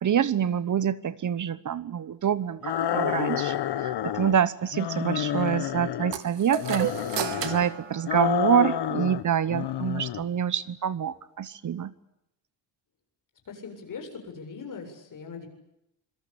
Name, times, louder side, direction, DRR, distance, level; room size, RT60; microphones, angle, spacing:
voice 1, 0.0-6.9 7.4-11.9, right 8 dB, 45° right, 16 dB, 1.1 m, -26 dB
sound 1, 2.6-4.4 4.7-6.2 6.6-7.6 8.0-9.2 9.5-10.2, left 11 dB, 70° left, 1.7 m, -29 dB
sound 2, 6.1-8.8, right 9 dB, 85° right, 3.2 m, -33 dB
voice 2, 13.5-15.5, left 5 dB, 45° left, 4 dB, 7.9 m, -40 dB
26.5 x 25.0 x 8.6 m, 0.81 s
cardioid pair, 150°, 42 cm